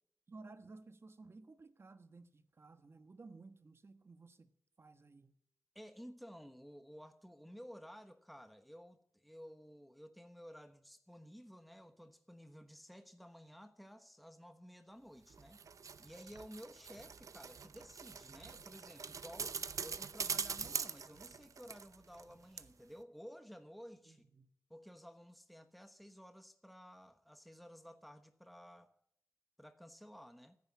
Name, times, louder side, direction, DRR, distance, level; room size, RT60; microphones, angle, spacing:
voice 1, 0.3-4.5 4.8-5.4 24.1-24.5, right 3 dB, 50° right, 1.3 m, -56 dB
voice 2, 5.7-15.6 16.0-24.2 24.7-28.9 29.6-30.6, equal, ahead, 1.1 m, -54 dB
sound 1, 15.3-22.3 22.6-22.7, right 6 dB, 75° right, 0.7 m, -43 dB
14.5 x 9.5 x 8.5 m
wide cardioid pair, 90°, 6 cm